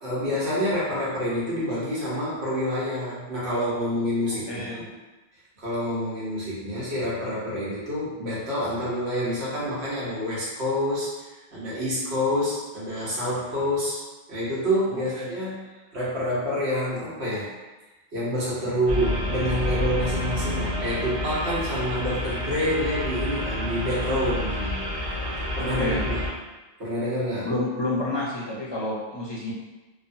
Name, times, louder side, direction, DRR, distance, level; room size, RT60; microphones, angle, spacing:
voice 1, 0.0-4.8 5.6-14.0 14.3-17.5 18.1-24.8 25.6-26.3 26.8-27.5, equal, 85° right, -8 dB, 1.3 m, -27 dB
voice 2, 14.9-15.3 25.8-26.0 27.4-29.5, left 2 dB, 35° left, -5 dB, 0.5 m, -29 dB
sound 1, 18.9-26.3, left 1 dB, 35° right, 0.7 m, -29 dB
3.0 x 2.2 x 2.6 m, 1.2 s
omnidirectional pair, 1.1 m